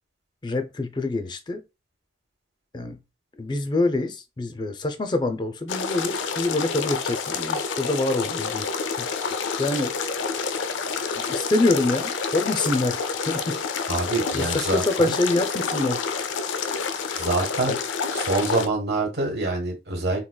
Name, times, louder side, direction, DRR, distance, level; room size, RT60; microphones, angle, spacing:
voice 1, 0.4-1.6 2.7-3.0 3.4-8.7 9.0-9.1 9.6-10.1 11.2-13.6 14.3-16.1 17.7-17.8, left 2 dB, 25° left, 0.4 m, -26 dB
sound 1, 5.7-18.7, left 5 dB, 85° left, 0.4 m, -28 dB
voice 2, 13.9-15.1 17.1-17.8 18.2-20.3, right 2 dB, 60° right, 1.3 m, -25 dB
3.7 x 2.8 x 2.2 m
head